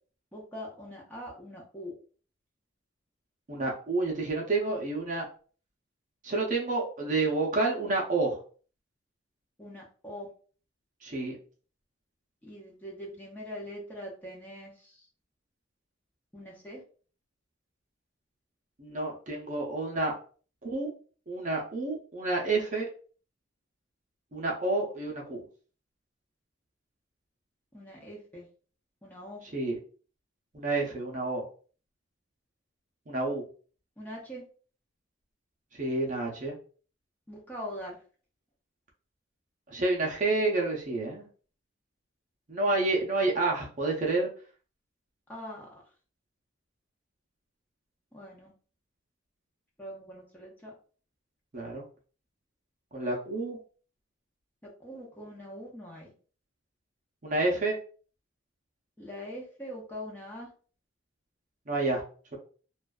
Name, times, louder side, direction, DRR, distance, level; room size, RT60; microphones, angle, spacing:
voice 1, 0.3-1.9 9.6-10.3 12.4-15.0 16.3-16.8 27.7-28.5 29.0-29.4 34.0-34.4 37.3-38.0 45.3-45.7 48.1-48.5 49.8-50.7 54.8-56.1 59.0-60.5, equal, 10° left, -4 dB, 0.6 m, -42 dB
voice 2, 3.5-5.3 6.2-8.4 11.0-11.4 18.8-20.1 20.6-20.9 21.3-22.9 24.3-25.4 29.5-29.8 30.5-31.4 33.1-33.4 35.7-36.6 39.7-41.3 42.5-44.3 51.5-51.8 52.9-53.6 57.2-57.8 61.7-62.0, right 2 dB, 40° right, -1 dB, 0.6 m, -29 dB
2.5 x 2.3 x 2.2 m, 0.40 s
head